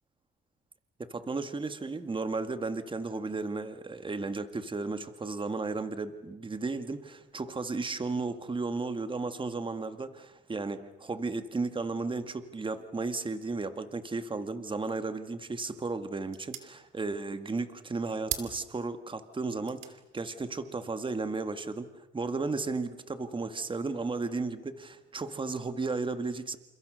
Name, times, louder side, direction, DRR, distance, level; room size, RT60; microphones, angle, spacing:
voice 1, 1.0-26.6, right 3 dB, 25° right, 10 dB, 2.0 m, -34 dB
sound 1, 15.3-22.1, right 11 dB, 85° right, 2.8 m, -45 dB
30.0 x 28.5 x 6.5 m, 0.93 s
cardioid pair, 90°, 20 cm